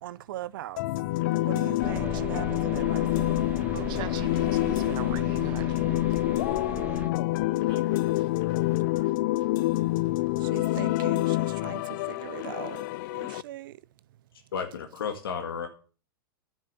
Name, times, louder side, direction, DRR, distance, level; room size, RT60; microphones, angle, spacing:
voice 1, 0.0-0.8 1.4-3.4 6.6-7.0 10.4-12.8 13.1-13.7, right 14 dB, 65° right, 0.6 m, -40 dB
sound 1, 0.8-13.4, left 18 dB, 60° left, 0.4 m, -27 dB
sound 2, 1.8-7.1, right 1 dB, 15° right, 2.1 m, -37 dB
voice 2, 3.7-5.9 7.7-7.8, right 14 dB, 40° right, 1.2 m, -40 dB
voice 3, 14.5-15.7, left 6 dB, 80° left, 1.9 m, -32 dB
11.0 x 7.4 x 6.8 m
hypercardioid pair, 115°, 12 cm